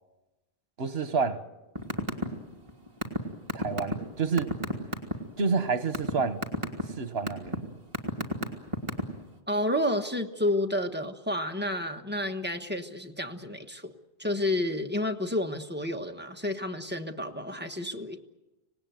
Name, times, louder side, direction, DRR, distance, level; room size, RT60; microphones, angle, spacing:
voice 1, 0.8-1.4 3.5-4.5 5.4-6.4 7.0-7.8, right 5 dB, 75° right, 1.6 m, -29 dB
sound 1, 1.8-2.3 2.5-5.1 5.6-6.1 6.4-6.8 7.3-7.6 7.9-9.2, left 2 dB, 30° right, 2.6 m, -29 dB
voice 2, 9.5-13.9 14.2-18.2, left 1 dB, 10° right, 1.4 m, -30 dB
26.0 x 19.0 x 9.3 m
omnidirectional pair, 1.1 m